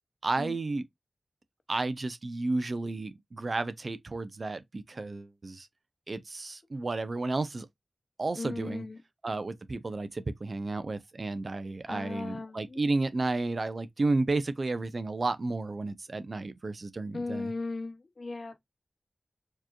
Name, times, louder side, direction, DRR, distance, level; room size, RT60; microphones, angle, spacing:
voice 1, 0.2-0.8 1.7-5.7 6.1-7.7 8.2-8.8 9.2-17.5, right 3 dB, 55° right, 0.6 m, -32 dB
voice 2, 8.4-9.0 11.9-12.8 17.1-18.6, left 3 dB, 60° left, 0.8 m, -37 dB
4.6 x 3.0 x 2.3 m
cardioid pair, 55°, 0 cm